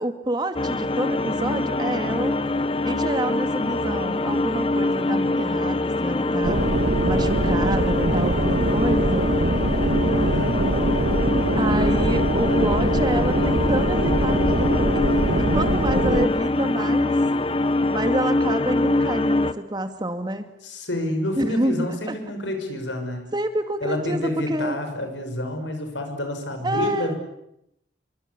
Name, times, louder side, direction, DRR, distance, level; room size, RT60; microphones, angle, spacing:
voice 1, 0.0-2.4 2.8-9.3 11.6-17.2 17.9-20.5 21.4-22.2 23.3-24.8 26.6-27.1, right 1 dB, 25° right, 8 dB, 2.3 m, -28 dB
sound 1, 0.5-19.5, left 2 dB, 30° left, 1.1 m, -24 dB
sound 2, 6.4-16.3, right 1 dB, 65° right, 1.9 m, -23 dB
voice 2, 10.2-10.6 20.6-23.3 23.8-27.2, left 1 dB, 85° left, 6 dB, 6.3 m, -28 dB
27.0 x 24.5 x 8.4 m, 0.80 s
head